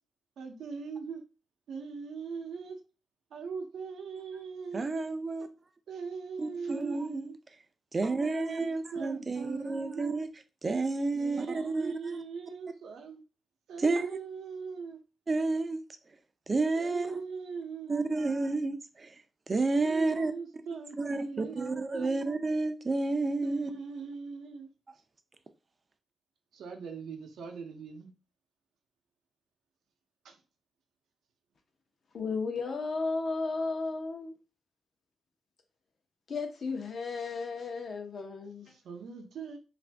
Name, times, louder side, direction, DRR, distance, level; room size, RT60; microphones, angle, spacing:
voice 1, 0.4-1.2 1.7-2.8 3.3-5.1 5.9-7.4 8.2-10.2 11.1-13.2 13.7-15.0 16.8-18.3 19.8-22.2 23.4-24.7 26.5-28.1 30.2-30.4 38.7-39.6, right 5 dB, 85° right, 0.6 m, -41 dB
voice 2, 4.7-5.5 6.4-7.3 7.9-10.3 10.6-11.9 13.8-14.2 15.3-15.8 16.5-17.2 17.9-19.1 19.5-20.3 21.0-23.7, right 3 dB, 30° right, 0.4 m, -30 dB
voice 3, 32.1-34.3 36.3-38.7, left 4 dB, 55° left, 0.7 m, -34 dB
2.6 x 2.5 x 3.3 m
cardioid pair, 125°, 0 cm